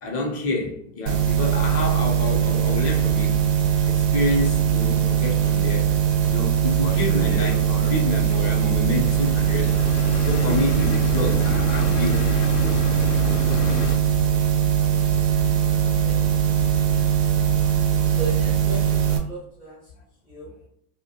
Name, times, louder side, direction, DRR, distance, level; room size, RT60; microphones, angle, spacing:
voice 1, 0.0-3.4 3.9-5.9 6.3-10.0 10.3-12.3 12.6-13.0 13.4-13.5, left 2 dB, 30° left, 0.6 m, -28 dB
sound 1, 1.1-19.2, right 9 dB, 90° right, 0.8 m, -21 dB
sound 2, 6.8-14.0, left 6 dB, 70° left, 0.6 m, -31 dB
voice 2, 15.8-16.1 18.2-19.8 20.3-20.5, right 4 dB, 5° right, 0.4 m, -35 dB
2.4 x 2.1 x 2.8 m
hypercardioid pair, 115°, 47 cm